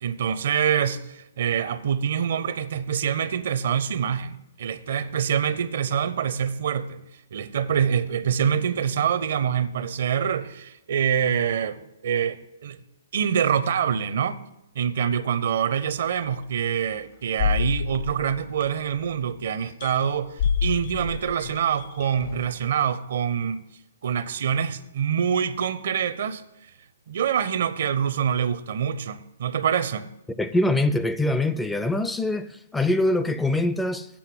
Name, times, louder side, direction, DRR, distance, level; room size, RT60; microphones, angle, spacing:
voice 1, 0.0-7.0 7.3-12.8 13.1-14.4 14.7-23.6 24.0-26.4 27.1-30.1, right 8 dB, 60° right, 0.6 m, -25 dB
sound 1, 16.2-16.3 17.4-19.0 19.8-20.1 20.4-22.6, left 6 dB, 50° left, 0.8 m, -28 dB
voice 2, 30.4-34.1, left 2 dB, 5° left, 0.4 m, -23 dB
8.5 x 5.6 x 7.6 m
hypercardioid pair, 125°, 0 cm